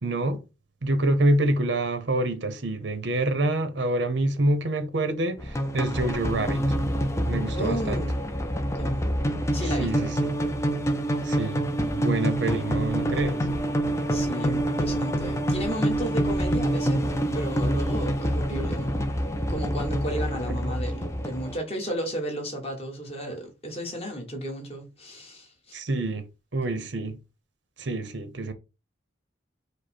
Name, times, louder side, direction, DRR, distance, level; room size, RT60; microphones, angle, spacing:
voice 1, 0.0-0.4 0.8-6.6 7.3-8.0 9.8-10.3 11.2-11.7 12.0-13.5 20.7-20.8 25.7-26.3 26.5-27.2 27.8-28.5, right 1 dB, 70° right, 0.8 m, -26 dB
sound 1, 5.4-21.6, equal, 15° left, 0.5 m, -26 dB
voice 2, 7.5-8.2 8.8-9.0 9.5-10.1 14.1-17.0 17.3-19.0 19.5-25.5, equal, 30° left, 1.3 m, -33 dB
5.1 x 2.1 x 4.2 m
head